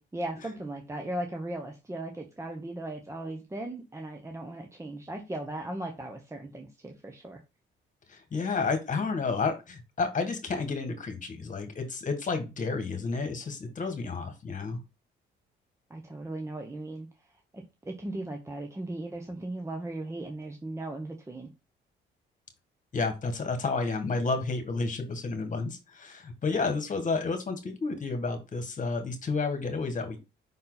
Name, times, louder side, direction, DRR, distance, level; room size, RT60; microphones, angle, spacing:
voice 1, 0.0-7.4 15.9-17.1 17.5-21.5, right 1 dB, 15° right, 3 dB, 1.0 m, -37 dB
voice 2, 8.1-14.8 22.9-30.2, left 4 dB, 40° left, 7 dB, 1.8 m, -31 dB
5.7 x 4.2 x 4.0 m, 0.27 s
cardioid pair, 90°, 20 cm